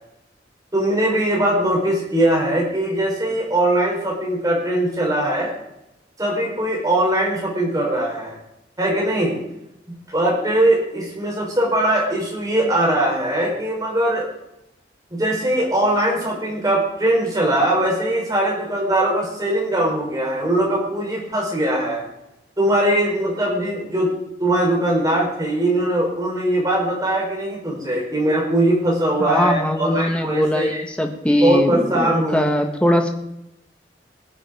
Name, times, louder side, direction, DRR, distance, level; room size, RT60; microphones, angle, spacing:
voice 1, 0.7-5.5 6.2-8.4 8.8-9.4 10.1-14.3 15.1-22.0 22.6-24.1 24.4-30.8 31.4-32.5, right 1 dB, 20° right, -2 dB, 4.8 m, -21 dB
voice 2, 29.2-33.1, equal, 5° left, 3 dB, 1.5 m, -20 dB
21.0 x 7.5 x 5.0 m, 0.85 s
head